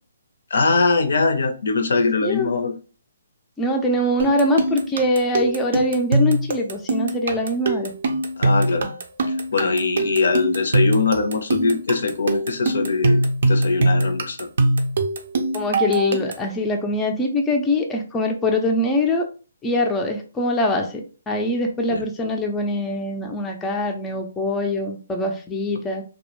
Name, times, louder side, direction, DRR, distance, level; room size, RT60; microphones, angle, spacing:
voice 1, 0.5-2.7 8.4-8.9 9.5-14.5 21.9-22.0, left 4 dB, 70° left, 6 dB, 0.5 m, -22 dB
voice 2, 3.6-7.9 15.5-19.3 19.6-26.0, left 1 dB, 10° left, 2 dB, 0.4 m, -23 dB
sound 1, 4.2-16.5, right 2 dB, 60° right, 0.5 m, -22 dB
2.2 x 2.0 x 3.0 m, 0.35 s
hypercardioid pair, 150°, 0 cm